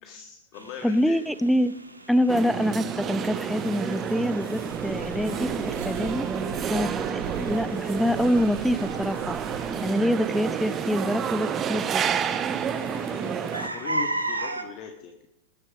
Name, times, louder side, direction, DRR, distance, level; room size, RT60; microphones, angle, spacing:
voice 1, 0.0-1.2 12.8-15.3, left 7 dB, 40° left, 5 dB, 1.4 m, -40 dB
sound 1, 0.5-14.6, right 2 dB, 85° right, 1.5 m, -38 dB
voice 2, 0.8-1.7 2.1-5.5 5.8-6.3 6.7-9.4 9.8-12.2, equal, ahead, 16 dB, 0.6 m, -25 dB
sound 2, 2.3-13.7, right 7 dB, 25° right, 1.1 m, -30 dB
sound 3, 4.7-9.7, right 6 dB, 60° right, 3.5 m, -41 dB
20.5 x 9.8 x 5.0 m, 0.95 s
figure-of-eight pair, 90°, 0 cm